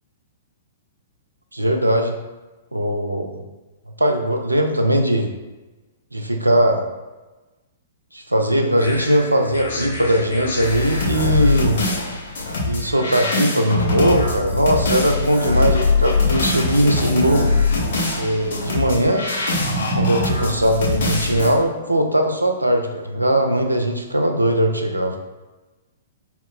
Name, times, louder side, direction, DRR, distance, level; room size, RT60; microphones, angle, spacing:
voice 1, 1.5-2.2 2.7-3.4 4.0-5.3 6.1-6.8 8.1-11.8 12.6-17.5 18.2-19.3 20.0-25.2, right 1 dB, 85° right, 4 dB, 0.4 m, -19 dB
sound 1, 8.8-21.5, left 3 dB, 55° left, 1.1 m, -23 dB
4.5 x 2.1 x 3.6 m, 1.2 s
figure-of-eight pair, 110°, 0 cm